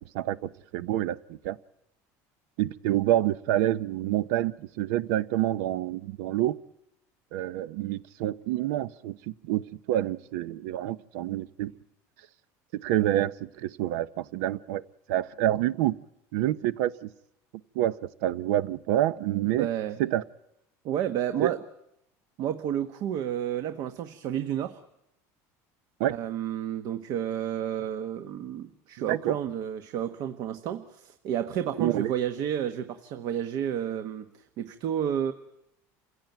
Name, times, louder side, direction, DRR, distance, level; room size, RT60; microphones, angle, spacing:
voice 1, 0.1-1.6 2.6-6.6 7.3-11.7 12.7-14.8 15.1-16.0 16.3-17.1 17.7-19.7 20.0-20.2 21.4-21.5 26.0-26.2 29.1-29.4 31.8-32.1, right 13 dB, 80° right, 16 dB, 0.8 m, -27 dB
voice 2, 19.6-20.0 20.8-21.6 22.4-24.8 26.1-34.3 34.6-35.3, right 10 dB, 55° right, 9 dB, 1.1 m, -31 dB
27.5 x 16.5 x 9.2 m, 0.85 s
cardioid pair, 145°, 8 cm